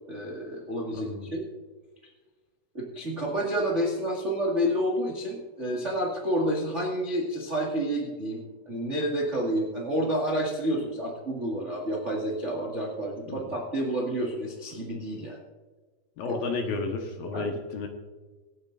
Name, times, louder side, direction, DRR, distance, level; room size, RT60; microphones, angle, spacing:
voice 1, 0.1-1.4 2.7-15.4 16.2-16.4 17.3-17.5, equal, 55° right, -1 dB, 0.8 m, -29 dB
voice 2, 0.9-1.3 13.3-13.5 16.2-17.9, left 3 dB, 70° left, 3 dB, 2.6 m, -32 dB
25.5 x 8.8 x 2.6 m, 1.3 s
omnidirectional pair, 5.1 m